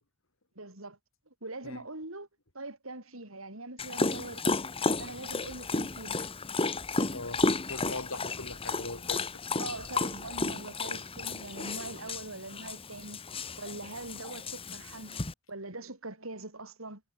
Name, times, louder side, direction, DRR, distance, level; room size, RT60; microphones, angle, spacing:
voice 1, 0.5-1.0 1.4-2.3 2.5-4.5 5.0-6.2 9.6-17.0, right 2 dB, 75° right, 6.8 m, -42 dB
Dog, 3.8-15.3, left 3 dB, 25° left, 1.6 m, -33 dB
sound 1, 5.4-10.5, left 1 dB, 55° left, 4.6 m, -56 dB
voice 2, 7.1-7.4 7.7-9.3, left 2 dB, 70° left, 4.9 m, -39 dB
head